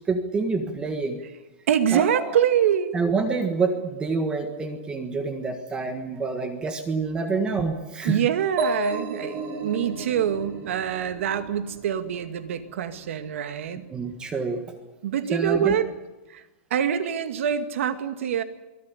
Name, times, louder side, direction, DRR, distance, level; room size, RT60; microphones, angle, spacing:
voice 1, 0.1-1.2 1.9-2.3 2.9-8.2 13.9-14.6 15.3-15.7, right 4 dB, 10° right, 7 dB, 1.6 m, -27 dB
voice 2, 1.7-2.9 8.0-13.8 15.0-15.9 16.3-16.4 16.7-18.4, right 9 dB, 70° right, 9 dB, 2.2 m, -25 dB
sound 1, 8.6-12.2, right 2 dB, 30° right, 3.9 m, -32 dB
24.0 x 15.0 x 9.9 m, 1.1 s
supercardioid pair, 175°, 7 cm